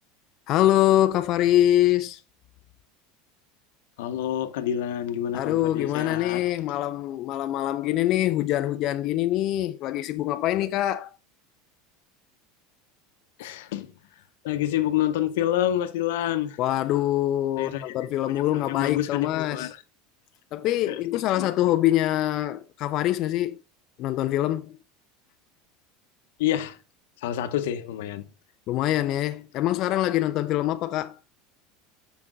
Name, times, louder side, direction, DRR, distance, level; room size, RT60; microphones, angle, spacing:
voice 1, 0.5-2.2 5.3-11.1 16.6-19.7 20.5-23.6 24.0-24.7 28.7-31.2, left 13 dB, 40° left, 0.3 m, -24 dB
voice 2, 4.0-6.4 13.4-13.9 14.4-16.6 17.6-17.9 18.5-19.8 20.9-21.5 26.4-26.8 27.2-28.3, left 11 dB, 80° left, 0.8 m, -28 dB
6.1 x 5.7 x 3.8 m
supercardioid pair, 170°, 0 cm